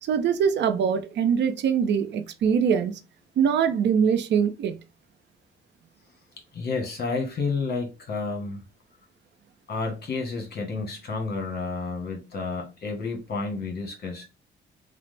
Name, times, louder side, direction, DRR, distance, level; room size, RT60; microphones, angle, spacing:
voice 1, 0.0-3.0 3.4-4.7, right 7 dB, 65° right, 0.5 m, -23 dB
voice 2, 6.5-8.6 9.7-14.2, left 4 dB, 55° left, 1.2 m, -30 dB
3.3 x 2.0 x 3.2 m
cardioid pair, 90°, 20 cm